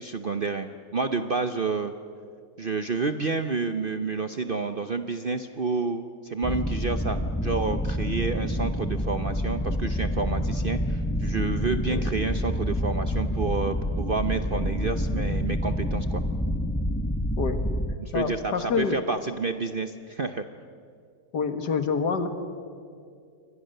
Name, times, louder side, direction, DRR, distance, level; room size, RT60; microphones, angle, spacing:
voice 1, 0.0-1.9 2.6-16.2 18.0-20.4, right 4 dB, 45° right, 8 dB, 0.7 m, -29 dB
sound 1, 6.4-18.0, equal, 10° left, 0.8 m, -28 dB
voice 2, 18.1-19.0 21.3-22.3, left 5 dB, 75° left, 8 dB, 2.2 m, -27 dB
28.5 x 24.0 x 6.7 m, 2.3 s
omnidirectional pair, 1.8 m